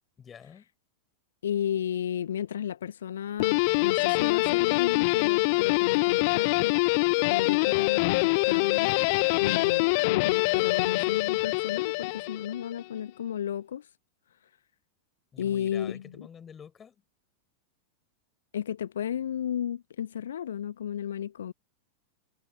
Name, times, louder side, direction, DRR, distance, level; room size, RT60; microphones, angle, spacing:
voice 1, 0.2-0.7 15.3-17.0, left 7 dB, 20° left, 4.5 m, -48 dB
voice 2, 1.4-6.8 7.3-8.9 9.4-13.9 14.3-14.5 15.4-16.3 18.5-21.5, left 9 dB, 65° left, 0.8 m, -33 dB
Guitar, 3.4-12.7, left 29 dB, 45° left, 0.4 m, -25 dB
figure-of-eight pair, 90°, 0 cm